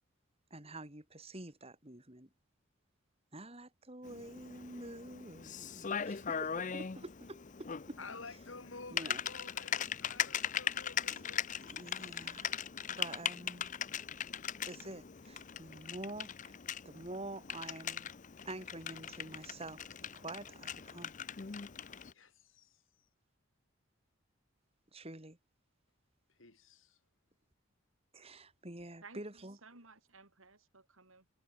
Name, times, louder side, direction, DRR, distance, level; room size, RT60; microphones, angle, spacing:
voice 1, 0.5-2.3 3.3-8.0 8.9-9.2 11.1-11.3 11.6-13.7 14.6-16.6 16.8-18.0 18.4-19.8 20.1-21.1 24.9-25.4 28.1-29.6, right 2 dB, 30° right, 3.3 m, -48 dB
Typing, 4.0-22.1, left 8 dB, 40° left, 0.6 m, -40 dB
voice 2, 8.0-11.6 22.1-22.8 26.4-27.0, left 3 dB, 75° left, 4.4 m, -51 dB
voice 3, 29.0-31.4, right 4 dB, 85° right, 6.0 m, -57 dB
head